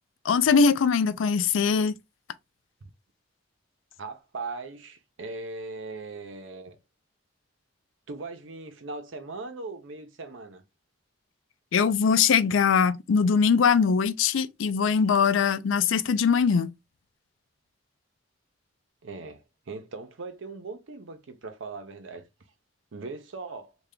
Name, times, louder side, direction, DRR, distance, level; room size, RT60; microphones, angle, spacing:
voice 1, 0.2-1.9 11.7-16.7, left 6 dB, 85° left, 0.4 m, -22 dB
voice 2, 4.0-6.8 8.1-10.6 19.0-22.3 22.9-23.7, right 3 dB, 85° right, 0.7 m, -39 dB
3.3 x 2.3 x 3.6 m
head